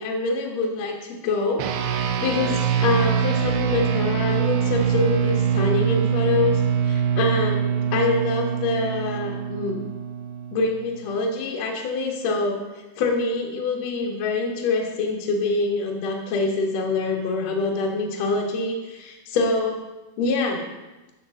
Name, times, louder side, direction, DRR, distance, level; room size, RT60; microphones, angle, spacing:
voice 1, 0.0-9.8 10.5-12.6 13.0-19.8 20.2-20.7, left 3 dB, 70° left, 0 dB, 1.6 m, -25 dB
sound 1, 1.6-11.2, right 8 dB, 80° right, 2.6 m, -24 dB
11.5 x 6.1 x 3.7 m, 1.1 s
omnidirectional pair, 5.0 m